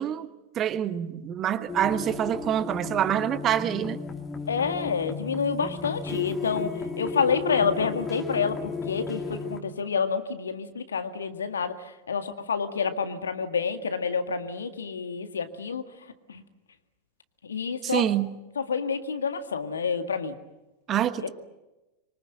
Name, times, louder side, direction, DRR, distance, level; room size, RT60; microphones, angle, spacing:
voice 1, 0.0-4.0 17.8-18.3 20.9-21.3, right 10 dB, 30° right, 13 dB, 1.3 m, -26 dB
sound 1, 1.7-9.6, left 4 dB, 20° left, 2.8 m, -34 dB
voice 2, 4.5-15.8 16.3-16.4 17.4-18.1 18.6-20.3 21.2-21.3, left 5 dB, 70° left, 9 dB, 1.9 m, -28 dB
25.5 x 24.0 x 7.8 m, 1.0 s
figure-of-eight pair, 90°, 0 cm